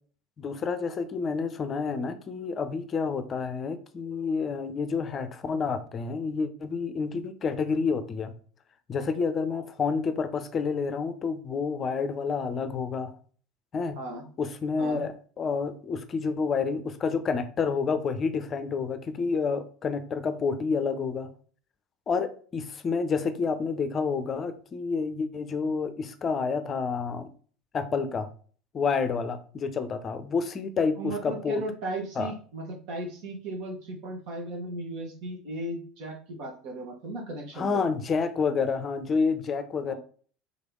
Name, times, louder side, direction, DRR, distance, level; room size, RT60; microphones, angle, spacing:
voice 1, 0.4-8.3 8.9-13.2 13.7-14.0 14.4-21.3 22.1-27.3 27.7-28.3 28.7-31.6 32.2-32.3 37.6-39.9, left 5 dB, 35° left, 0.5 m, -29 dB
voice 2, 13.9-14.3 14.8-15.0 31.0-37.8 39.9-40.0, right 1 dB, 60° right, 1.5 m, -36 dB
3.8 x 3.3 x 3.7 m
figure-of-eight pair, 70°, 0 cm